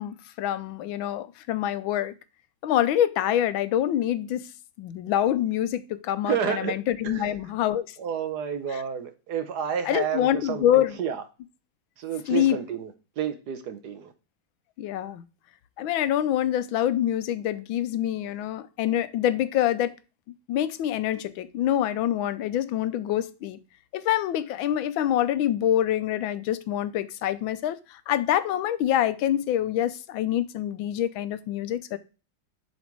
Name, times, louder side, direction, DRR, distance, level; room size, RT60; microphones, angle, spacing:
voice 1, 0.0-2.1 2.6-4.5 4.8-8.0 8.7-8.8 9.8-11.0 12.3-12.6 14.8-15.2 15.8-19.9 20.3-23.6 23.9-32.0, left 11 dB, 80° left, 1.4 m, -26 dB
voice 2, 6.2-6.7 7.0-7.3 8.0-11.2 12.0-12.9 13.2-14.1, right 8 dB, 65° right, 1.2 m, -30 dB
7.3 x 4.1 x 4.5 m
omnidirectional pair, 2.2 m